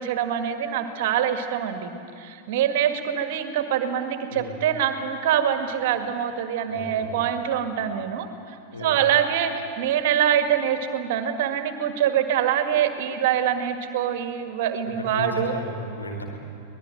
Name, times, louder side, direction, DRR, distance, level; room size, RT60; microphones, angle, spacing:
voice 1, 0.0-15.5, right 9 dB, 50° right, 7 dB, 1.9 m, -25 dB
voice 2, 6.7-7.1 8.7-9.0 14.9-16.2, left 1 dB, 80° left, 0 dB, 4.7 m, -34 dB
24.5 x 19.0 x 9.2 m, 2.4 s
figure-of-eight pair, 90°, 0 cm